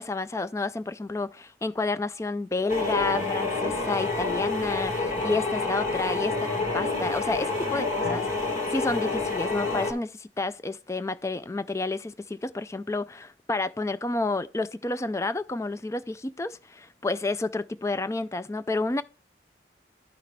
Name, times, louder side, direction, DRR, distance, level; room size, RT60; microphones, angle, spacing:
voice 1, 0.0-19.0, left 3 dB, 15° left, 0.3 m, -30 dB
sound 1, 2.7-9.9, left 3 dB, 45° left, 2.3 m, -28 dB
12.0 x 5.7 x 3.3 m
head